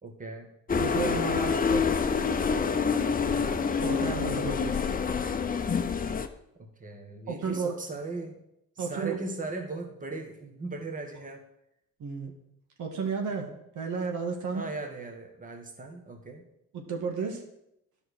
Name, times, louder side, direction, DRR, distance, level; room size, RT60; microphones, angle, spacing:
voice 1, 0.0-0.5 3.0-3.5 6.8-8.4 8.8-11.4 14.5-16.4, right 3 dB, 25° right, 3 dB, 1.7 m, -38 dB
sound 1, 0.7-6.3, left 5 dB, 30° left, 0.8 m, -27 dB
voice 2, 0.8-1.9 3.8-4.8 7.3-7.8 8.8-9.2 12.0-12.3 12.8-13.5 13.8-14.6 16.7-17.4, right 5 dB, 75° right, 3 dB, 2.0 m, -32 dB
11.0 x 5.5 x 6.6 m, 0.82 s
cardioid pair, 90°, 30 cm